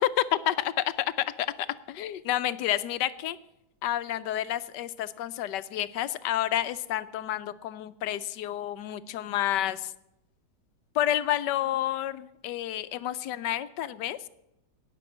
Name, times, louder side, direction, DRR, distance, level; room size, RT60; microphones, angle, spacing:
voice 1, 0.5-0.8 1.2-3.4 3.8-9.9 10.9-14.2, left 12 dB, 75° left, 14 dB, 1.2 m, -30 dB
18.0 x 6.1 x 7.3 m, 0.85 s
omnidirectional pair, 2.0 m